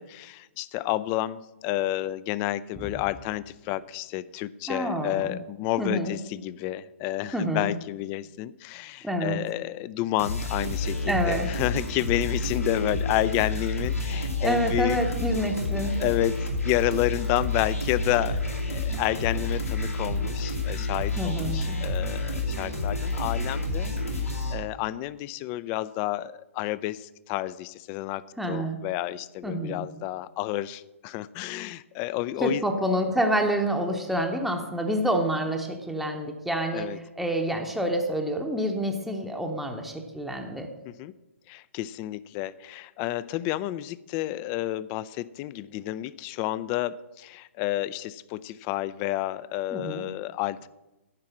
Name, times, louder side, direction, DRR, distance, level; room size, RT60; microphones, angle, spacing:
voice 1, 0.0-15.0 16.0-24.2 24.5-28.2 28.5-32.6 36.7-37.0 40.9-41.1 41.5-50.7, left 15 dB, 25° left, 18 dB, 0.3 m, -30 dB
voice 2, 4.7-5.4 5.8-6.2 7.3-7.7 9.0-9.4 11.0-11.5 14.4-16.0 21.2-21.8 28.4-28.8 29.4-29.9 32.4-40.7 49.7-50.1, equal, ahead, 2 dB, 0.8 m, -28 dB
sound 1, 10.2-24.5, left 2 dB, 85° left, 2.5 m, -29 dB
10.5 x 4.7 x 7.2 m, 1.0 s
figure-of-eight pair, 125°, 7 cm